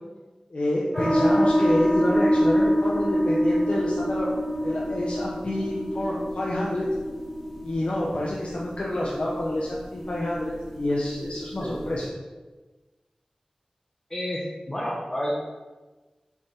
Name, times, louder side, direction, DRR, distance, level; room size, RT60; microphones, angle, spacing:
voice 1, 0.5-4.3 4.6-6.9 7.6-12.0, left 1 dB, 60° left, -5 dB, 0.6 m, -28 dB
sound 1, 0.9-12.1, equal, 5° right, 1.0 m, -26 dB
voice 2, 14.1-15.4, equal, 20° left, -7 dB, 0.8 m, -30 dB
4.3 x 3.5 x 3.2 m, 1.2 s
wide cardioid pair, 50°, 2 cm